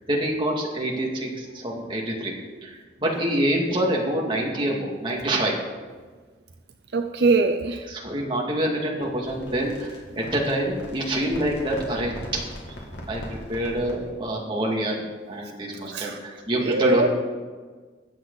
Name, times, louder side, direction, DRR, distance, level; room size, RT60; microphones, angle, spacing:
voice 1, 0.1-2.3 2.6-5.6 7.9-12.4 13.1-13.2 13.5-15.0 15.3-17.1, right 1 dB, 25° right, -2 dB, 2.4 m, -26 dB
voice 2, 6.9-7.9 15.7-16.2 16.5-17.1, right 3 dB, 65° right, 6 dB, 0.6 m, -23 dB
sound 1, 9.0-14.1, equal, 75° left, 2.6 m, -39 dB
21.0 x 7.9 x 4.1 m, 1.4 s
head